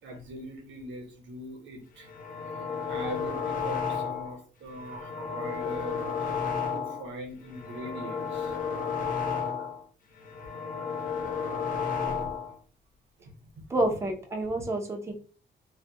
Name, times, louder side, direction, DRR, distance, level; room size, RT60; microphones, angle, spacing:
voice 1, 0.0-2.1 2.9-8.6 9.3-9.7 10.8-10.9 12.0-12.3 13.2-13.3 13.9-14.0, right 1 dB, 75° right, 2 dB, 0.8 m, -41 dB
sound 1, 2.0-4.4 4.8-7.1 7.5-9.8 10.2-12.6, left 6 dB, 45° left, 0.4 m, -32 dB
voice 2, 13.7-15.1, right 1 dB, 15° right, 2 dB, 0.4 m, -28 dB
2.2 x 2.1 x 2.6 m, 0.40 s
cardioid pair, 170°, 20 cm